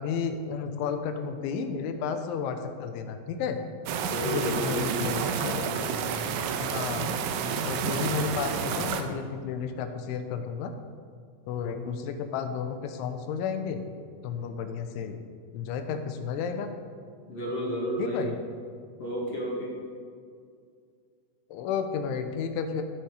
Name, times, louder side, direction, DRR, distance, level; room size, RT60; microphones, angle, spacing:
voice 1, 0.0-3.6 4.2-5.5 6.6-7.1 7.6-10.7 11.5-13.9 14.2-15.2 15.5-16.8 18.0-18.4 21.5-22.8, left 6 dB, 85° left, 7 dB, 3.2 m, -32 dB
sound 1, 3.9-9.0, right 7 dB, 85° right, 3.0 m, -30 dB
voice 2, 4.0-5.7 17.3-18.2 19.0-19.7, equal, 45° left, -5 dB, 2.5 m, -32 dB
15.5 x 6.5 x 4.8 m, 2.2 s
omnidirectional pair, 5.4 m